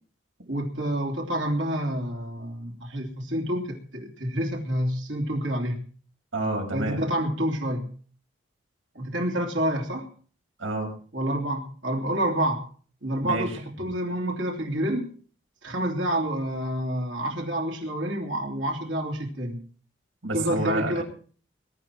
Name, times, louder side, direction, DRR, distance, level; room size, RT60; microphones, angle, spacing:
voice 1, 0.5-5.8 6.7-7.9 8.9-10.1 11.1-12.6 13.0-15.1 15.6-19.6 20.3-21.0, right 1 dB, 65° right, 0 dB, 3.2 m, -28 dB
voice 2, 6.3-7.0 10.6-10.9 13.2-13.5 20.2-21.0, right 2 dB, 80° right, 3 dB, 6.2 m, -29 dB
22.0 x 10.5 x 4.6 m, 0.43 s
head